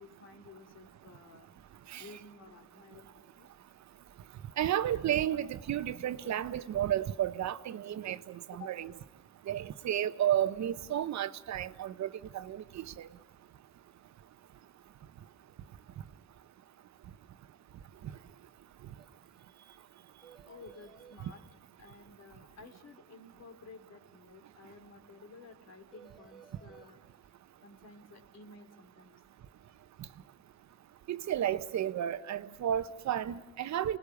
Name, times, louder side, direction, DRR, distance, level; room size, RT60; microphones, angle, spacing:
voice 1, 0.0-1.5 2.0-3.5 8.6-8.7 20.4-21.4 21.8-27.3 27.6-29.2, left 3 dB, 60° left, 3.0 m, -53 dB
voice 2, 4.6-8.9 9.5-13.1 21.2-21.3 31.1-34.0, right 11 dB, 65° right, 1.0 m, -32 dB
sound 1, 19.0-19.1 19.3-19.5 19.7-19.8 20.2-21.2 25.9-26.9, right 7 dB, ahead, 2.2 m, -56 dB
29.0 x 19.5 x 7.1 m
cardioid pair, 90°, 30 cm